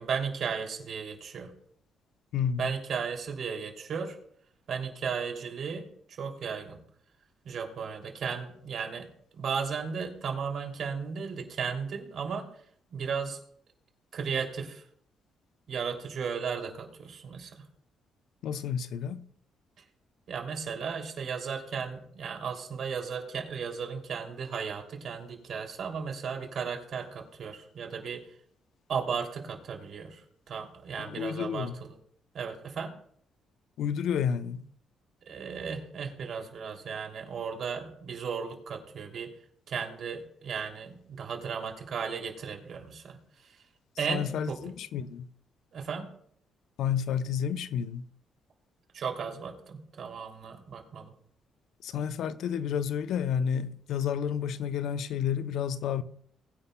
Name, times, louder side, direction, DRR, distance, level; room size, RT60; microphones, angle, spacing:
voice 1, 0.0-1.5 2.6-4.2 4.7-5.9 6.2-6.8 7.4-9.1 9.4-12.5 12.9-13.4 14.1-14.8 15.7-17.7 20.3-28.2 28.9-32.0 32.3-32.9 35.3-39.3 39.7-43.6 44.0-44.6 45.7-46.1 48.9-51.1, right 6 dB, 60° right, 2.8 m, -35 dB
voice 2, 2.3-2.7 18.4-19.2 31.0-31.8 33.8-34.6 44.1-45.3 46.8-48.1 51.8-56.0, left 8 dB, 80° left, 0.6 m, -30 dB
21.0 x 9.7 x 2.2 m
cardioid pair, 90°, 0 cm